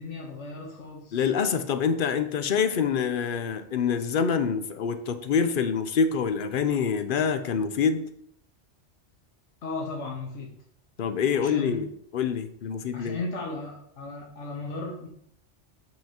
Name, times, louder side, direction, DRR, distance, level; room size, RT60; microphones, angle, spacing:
voice 1, 0.0-1.3 9.6-10.5 11.3-11.8 12.9-15.1, left 3 dB, 80° left, -2 dB, 1.4 m, -36 dB
voice 2, 1.1-8.0 11.0-13.2, left 6 dB, 55° left, 10 dB, 0.7 m, -26 dB
7.5 x 5.8 x 2.9 m, 0.69 s
omnidirectional pair, 1.2 m